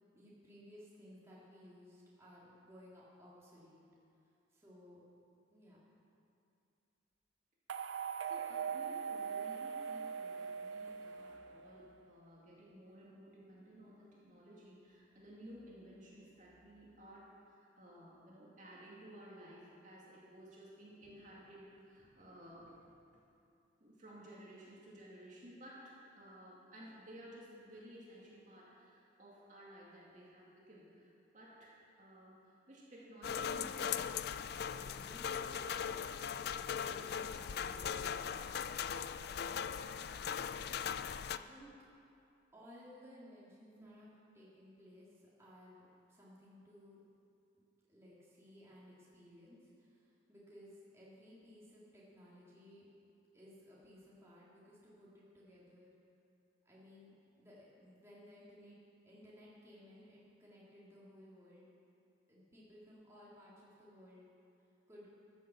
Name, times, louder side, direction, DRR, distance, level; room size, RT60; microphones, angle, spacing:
voice 1, 0.1-3.8 4.5-5.0 5.5-5.8 39.8-40.0 41.3-41.7 42.5-44.1 44.3-47.0 47.9-52.9 53.3-56.0 56.6-58.8 59.0-61.7 62.3-64.3 64.9-65.1, equal, 15° right, -7 dB, 2.3 m, -58 dB
sound 1, 7.7-11.9, right 7 dB, 80° right, 0.5 m, -41 dB
voice 2, 8.2-23.3 23.8-34.2 34.5-38.4 43.8-43.9, equal, 40° right, -5 dB, 2.4 m, -56 dB
sound 2, 33.2-41.4, left 7 dB, 55° left, 0.3 m, -39 dB
13.5 x 7.6 x 7.1 m, 2.6 s
head